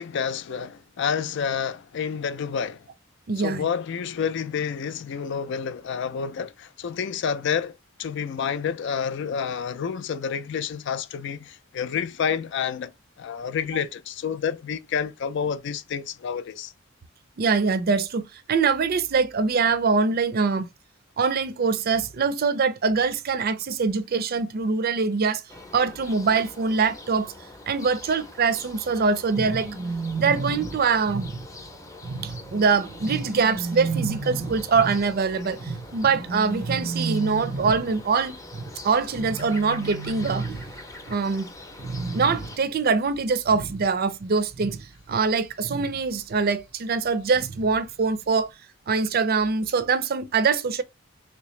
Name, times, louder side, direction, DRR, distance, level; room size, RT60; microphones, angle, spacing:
voice 1, 0.0-2.8 3.4-12.9 13.2-16.7, left 7 dB, 65° left, 0.4 m, -29 dB
voice 2, 3.3-3.6 17.4-20.7 21.2-25.4 25.7-27.3 27.7-29.7 30.2-31.3 32.2-38.4 38.8-40.5 41.1-41.5 42.1-44.8 45.1-48.5 48.9-50.8, right 5 dB, 50° right, 0.5 m, -23 dB
sound 1, 25.5-42.6, left 2 dB, 15° left, 0.6 m, -44 dB
sound 2, 29.3-41.1 41.3-41.5 41.8-42.7 43.1-44.1 44.5-46.1 47.3-47.8 48.2-48.3, right 4 dB, 90° right, 0.7 m, -33 dB
3.3 x 2.8 x 3.1 m
head